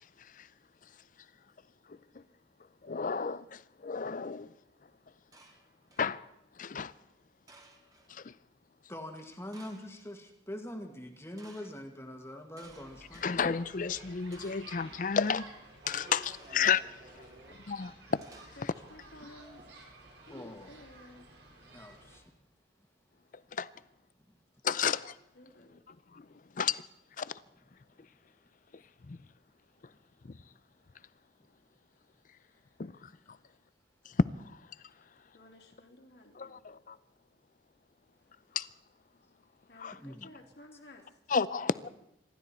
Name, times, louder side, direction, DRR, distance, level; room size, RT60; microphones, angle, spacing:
voice 1, 2.8-4.5 6.0-6.2 6.6-6.9 8.1-8.3 13.2-15.5 15.9-16.2 16.5-16.8 17.7-18.2 20.3-20.4 23.5-23.6 24.7-25.1 26.1-26.2 26.6-26.8 27.2-27.3 29.1-29.2 32.8-33.1 34.2-34.3 36.4-36.6 36.9-37.0 38.6-38.7 39.8-39.9 41.3-41.9, left 6 dB, 45° left, 0.5 m, -31 dB
sound 1, 5.3-6.1 7.5-8.1 9.5-10.1 11.4-11.7 12.6-13.3 14.3-14.8 16.2-16.8 18.2-18.9, right 2 dB, 20° right, 1.8 m, -58 dB
voice 2, 8.9-13.5 20.3-20.7 21.7-22.2 29.9-30.0 39.9-40.3, left 1 dB, 15° left, 1.8 m, -44 dB
sound 2, 12.6-22.2, right 2 dB, 75° right, 4.5 m, -54 dB
voice 3, 15.8-18.0, right 1 dB, 55° right, 4.4 m, -54 dB
voice 4, 18.6-19.6 20.6-21.3 25.3-25.8 35.3-36.6 39.7-41.9, left 1 dB, 65° left, 2.8 m, -55 dB
26.5 x 12.5 x 4.4 m
head